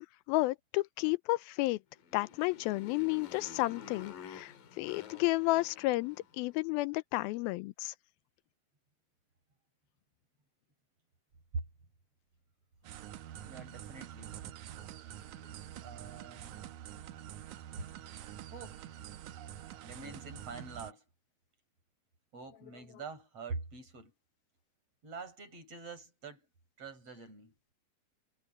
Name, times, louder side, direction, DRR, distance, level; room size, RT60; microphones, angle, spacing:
voice 1, 0.0-1.8 2.1-7.9, left 20 dB, 90° left, 2.5 m, -32 dB
Motorcycle, 2.0-6.5, left 8 dB, 70° left, 3.4 m, -50 dB
sound 1, 12.8-20.9, right 11 dB, 70° right, 2.0 m, -46 dB
voice 2, 13.4-14.4 15.8-16.6 18.5-18.9 19.8-21.0 22.3-24.1 25.0-26.5 26.8-27.6, right 4 dB, 40° right, 7.0 m, -44 dB
omnidirectional pair, 4.2 m